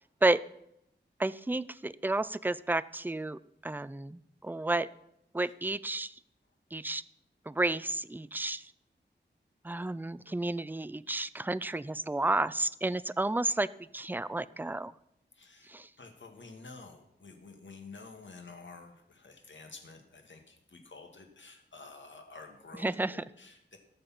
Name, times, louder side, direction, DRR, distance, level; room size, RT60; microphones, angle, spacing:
voice 1, 1.2-4.9 5.3-6.1 6.7-7.0 7.5-8.6 9.6-13.7 13.9-14.9 15.7-15.9 22.8-23.2, right 2 dB, 10° right, 17 dB, 0.4 m, -31 dB
voice 2, 15.4-23.8, left 3 dB, 85° left, 4 dB, 2.1 m, -50 dB
17.5 x 7.0 x 5.8 m, 0.78 s
wide cardioid pair, 80°, 19 cm